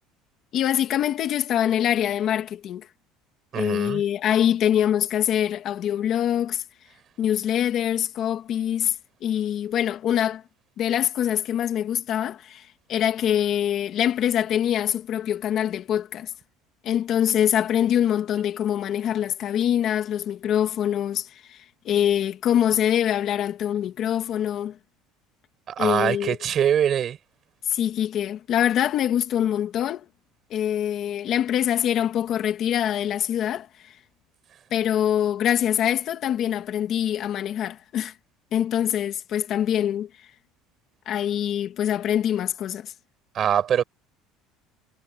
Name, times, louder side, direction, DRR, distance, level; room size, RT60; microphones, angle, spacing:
voice 1, 0.5-2.9 3.6-6.6 7.2-9.0 9.2-10.4 10.8-16.3 16.8-24.8 25.8-26.4 27.6-30.1 30.5-34.0 34.7-38.1 38.5-40.1 41.1-42.9, left 10 dB, 40° left, 1.9 m, -24 dB
voice 2, 3.5-4.0 25.7-27.2 43.3-43.8, right 9 dB, 30° right, 7.0 m, -23 dB
cardioid pair, 170°, 0 cm